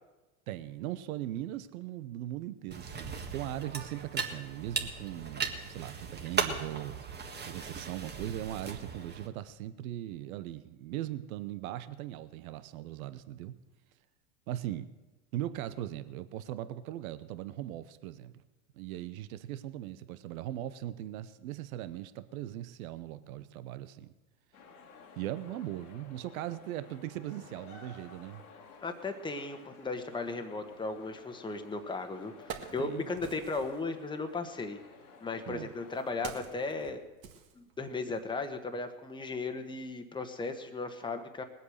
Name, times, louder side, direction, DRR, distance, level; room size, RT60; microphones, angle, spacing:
voice 1, 0.5-7.0 7.4-13.5 14.5-14.9 15.3-18.4 18.7-24.1 25.2-28.4 32.8-33.1 35.5-35.7, right 13 dB, 75° right, 1.0 m, -39 dB
sound 1, 2.7-9.3, right 5 dB, 25° right, 1.7 m, -37 dB
sound 2, 24.5-36.9, left 4 dB, 85° left, 2.4 m, -54 dB
voice 2, 28.8-34.8 35.2-37.0 37.5-41.4, left 3 dB, 10° left, 1.3 m, -36 dB
Wood, 31.7-31.8 32.2-33.8 34.8-38.1 38.4-38.6, right 7 dB, 45° right, 1.9 m, -47 dB
19.5 x 8.2 x 6.5 m
hypercardioid pair, 100°, 43 cm